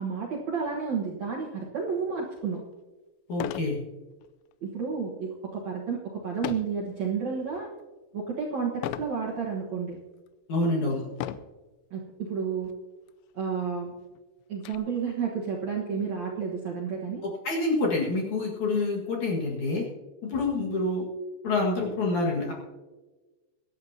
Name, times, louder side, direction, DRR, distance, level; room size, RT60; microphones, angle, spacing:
voice 1, 0.0-2.6 4.6-7.7 8.1-10.0 10.8-10.9 11.9-12.7 13.3-13.9 14.5-17.2, right 6 dB, 60° right, -3 dB, 1.9 m, -31 dB
sound 1, 2.4-2.5 3.3-3.8 4.2-4.5 6.4-6.8 7.4-7.8 8.8-9.2 9.9-10.0 11.1-11.6 12.6-12.8 13.1-13.2 13.6-14.8, left 13 dB, 85° left, 2.8 m, -35 dB
voice 2, 3.3-3.8 10.5-11.0 17.4-19.8 20.2-21.0 21.4-22.5, left 2 dB, 50° left, -3 dB, 2.7 m, -27 dB
24.0 x 11.5 x 2.8 m, 1.2 s
omnidirectional pair, 5.1 m